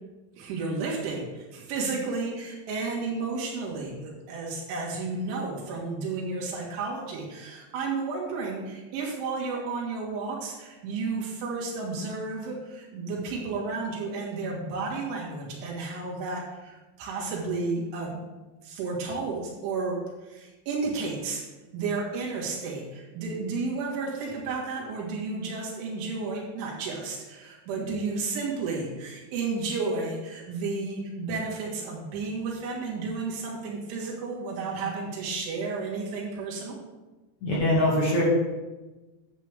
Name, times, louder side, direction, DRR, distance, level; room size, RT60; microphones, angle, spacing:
voice 1, 0.3-18.2 18.6-21.4 21.7-36.8, right 4 dB, 85° right, -3 dB, 4.4 m, -32 dB
voice 2, 37.4-38.2, left 1 dB, 50° left, -6 dB, 3.2 m, -23 dB
10.5 x 8.1 x 3.6 m, 1.2 s
omnidirectional pair, 5.3 m